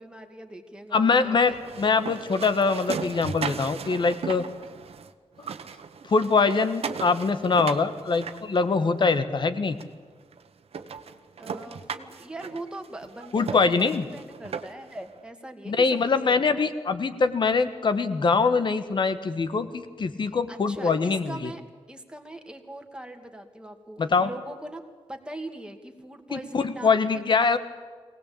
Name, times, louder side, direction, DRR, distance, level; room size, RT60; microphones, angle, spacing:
voice 1, 0.0-1.6 11.4-16.7 20.2-21.6 21.9-24.8 25.1-27.2, right 1 dB, 10° right, 4 dB, 2.3 m, -41 dB
voice 2, 0.9-4.5 6.1-9.8 13.3-14.0 15.7-21.5 24.0-24.3 26.3-27.6, left 4 dB, 50° left, 11 dB, 1.5 m, -23 dB
sound 1, 1.4-5.1 5.4-9.1 9.8-9.9 10.3-10.4 10.7-15.0, right 6 dB, 70° right, 1.3 m, -37 dB
23.0 x 18.5 x 8.6 m, 1.5 s
wide cardioid pair, 140°, 10 cm